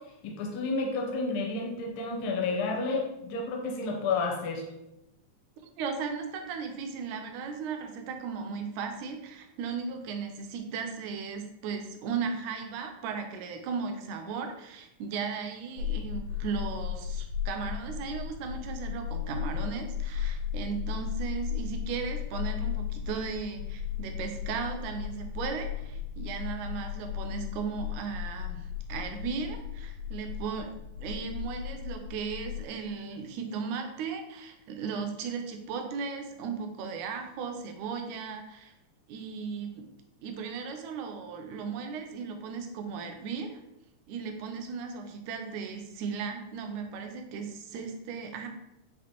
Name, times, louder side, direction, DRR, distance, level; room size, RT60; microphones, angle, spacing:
voice 1, 0.2-4.6, left 3 dB, 75° left, 0 dB, 1.6 m, -31 dB
voice 2, 5.8-30.7 31.0-38.7 39.1-39.9 40.2-43.6 44.1-48.5, right 5 dB, 80° right, 4 dB, 1.9 m, -36 dB
sound 1, 15.8-32.7, left 9 dB, 90° left, 2.3 m, -35 dB
6.1 x 2.5 x 2.9 m, 0.90 s
omnidirectional pair, 3.7 m